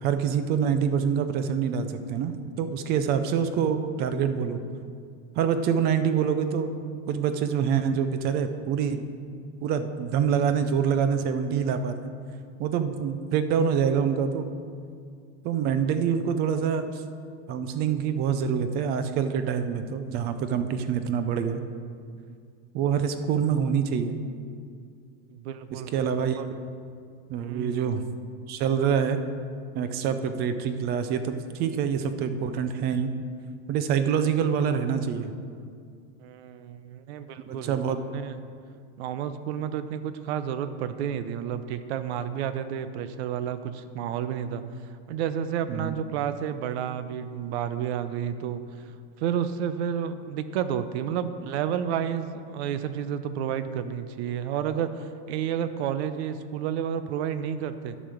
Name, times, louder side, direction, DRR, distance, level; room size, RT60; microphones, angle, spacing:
voice 1, 0.0-4.6 5.4-6.8 7.1-9.0 9.6-12.0 12.6-14.5 15.4-16.9 17.5-21.6 22.7-24.2 25.7-26.4 27.3-28.0 28.5-29.2 29.7-33.1 33.7-35.3 37.5-38.0 45.7-46.0, right 7 dB, 30° right, 10 dB, 0.4 m, -26 dB
voice 2, 25.3-26.1 26.4-26.5 27.4-27.9 36.2-38.4 39.0-44.6 45.1-48.9 49.2-58.0, right 9 dB, 70° right, 11 dB, 0.8 m, -31 dB
11.0 x 5.2 x 7.1 m, 2.2 s
supercardioid pair, 165°, 34 cm